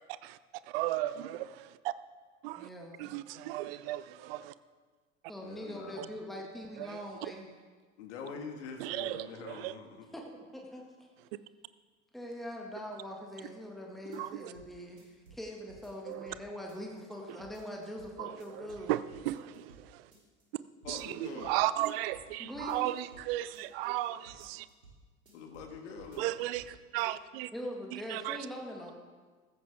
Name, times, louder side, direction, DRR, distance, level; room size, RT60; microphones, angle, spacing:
voice 1, 0.6-1.9 2.4-2.7 3.0-4.5 6.0-6.1 6.8-7.3 8.8-9.7 14.1-14.5 16.1-16.3 17.3-17.4 18.2-20.1 20.9-24.7 26.2-27.5 27.9-28.5, right 15 dB, 45° right, 15 dB, 0.7 m, -35 dB
voice 2, 2.6-3.1 5.3-7.5 10.1-10.2 10.5-10.8 12.1-18.9 22.4-22.9 27.5-28.9, equal, ahead, 0 dB, 2.0 m, -42 dB
voice 3, 5.4-6.0 8.0-10.1 20.8-21.5 25.3-26.4, left 5 dB, 55° left, 4 dB, 2.0 m, -44 dB
sound 1, 14.1-14.7 15.0-16.4 16.7-17.1 17.4-18.1 18.4-18.9 19.1-19.8 20.1-20.6 20.8-21.5 21.8-23.3 23.5-24.0 24.3-25.0 25.3-25.7 26.0-26.7 27.0-27.1, right 3 dB, 80° right, 3.2 m, -57 dB
14.5 x 14.0 x 3.6 m, 1.4 s
figure-of-eight pair, 80°, 41 cm